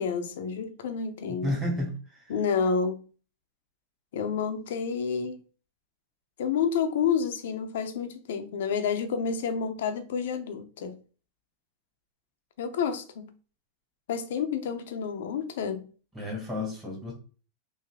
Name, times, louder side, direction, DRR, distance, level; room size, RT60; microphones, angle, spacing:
voice 1, 0.0-1.5 2.3-3.0 4.1-5.4 6.4-11.0 12.6-13.3 14.1-15.9, left 6 dB, 80° left, 0.6 m, -29 dB
voice 2, 1.4-2.2 16.1-17.1, left 1 dB, 10° right, 2.0 m, -31 dB
3.4 x 2.7 x 3.4 m
hypercardioid pair, 120°, 0 cm